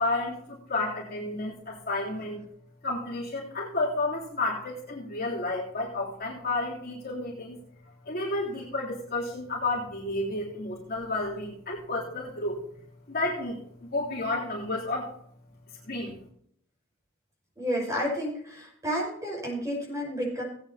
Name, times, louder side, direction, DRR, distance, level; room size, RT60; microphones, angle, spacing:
voice 1, 0.0-2.4 2.8-7.6 8.0-12.6 13.1-15.1 15.8-16.1, left 2 dB, 50° left, -4 dB, 3.4 m, -31 dB
voice 2, 17.6-20.4, equal, 15° right, -2 dB, 5.8 m, -31 dB
18.5 x 9.1 x 2.9 m, 0.66 s
head